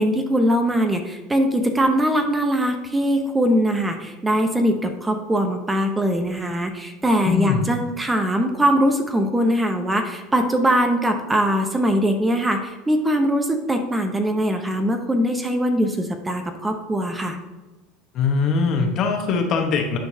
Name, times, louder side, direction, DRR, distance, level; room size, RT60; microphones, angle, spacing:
voice 1, 0.0-17.4, equal, 15° right, 5 dB, 0.9 m, -21 dB
voice 2, 7.3-7.7 18.1-20.0, left 5 dB, 50° left, 3 dB, 1.3 m, -21 dB
10.0 x 4.5 x 2.8 m, 1.1 s
hypercardioid pair, 90°, 0 cm